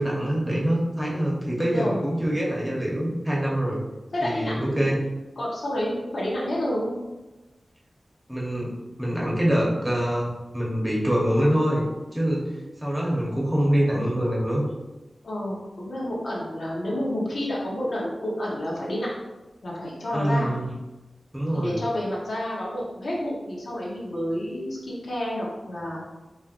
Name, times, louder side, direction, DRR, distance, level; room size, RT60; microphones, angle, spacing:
voice 1, 0.0-3.8 4.2-5.0 8.3-8.7 9.0-11.8 12.1-12.5 12.8-14.6 20.1-20.7 21.3-21.8, equal, 10° right, -4 dB, 1.0 m, -24 dB
voice 2, 1.6-2.0 4.1-4.9 5.4-7.0 15.2-19.1 19.6-20.5 21.5-26.0, left 1 dB, 75° left, -5 dB, 1.2 m, -29 dB
4.5 x 3.2 x 2.5 m, 1.1 s
wide cardioid pair, 100°, 0 cm